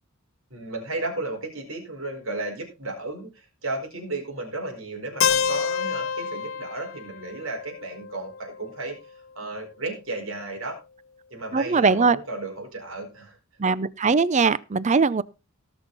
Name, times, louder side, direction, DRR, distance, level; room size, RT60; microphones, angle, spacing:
voice 1, 0.5-8.9 9.3-10.8 11.3-13.4, right 2 dB, 70° right, 4.6 m, -34 dB
Keyboard (musical), 5.2-9.1, left 7 dB, 65° left, 0.7 m, -28 dB
voice 2, 11.5-12.2 13.6-15.2, right 4 dB, 35° right, 0.5 m, -20 dB
18.5 x 6.3 x 4.0 m
head